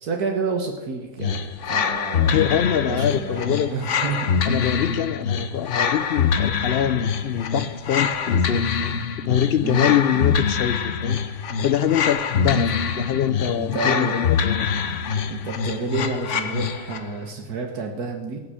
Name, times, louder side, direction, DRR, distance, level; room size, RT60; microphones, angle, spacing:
voice 1, 0.0-2.4 2.8-4.3 9.6-10.4 12.5-12.6 13.5-14.2 15.3-18.4, right 4 dB, 80° right, 3 dB, 1.8 m, -29 dB
sound 1, 1.2-17.1, left 6 dB, 55° left, 1.2 m, -24 dB
voice 2, 2.3-3.7 4.5-11.2 11.6-14.7, left 9 dB, 80° left, 13 dB, 0.5 m, -24 dB
18.0 x 6.2 x 8.1 m, 1.4 s
omnidirectional pair, 1.6 m